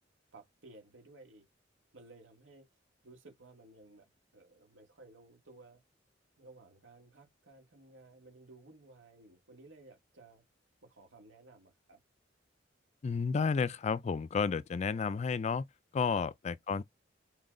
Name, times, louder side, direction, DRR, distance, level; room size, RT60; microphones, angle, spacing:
voice 1, 0.3-1.5 1.9-2.6 3.0-5.8 6.4-10.4 10.8-12.0 16.1-16.3, right 2 dB, 85° right, 2.0 m, -57 dB
voice 2, 13.0-15.7 15.9-16.8, left 5 dB, 35° left, 0.3 m, -31 dB
4.3 x 3.8 x 3.2 m
head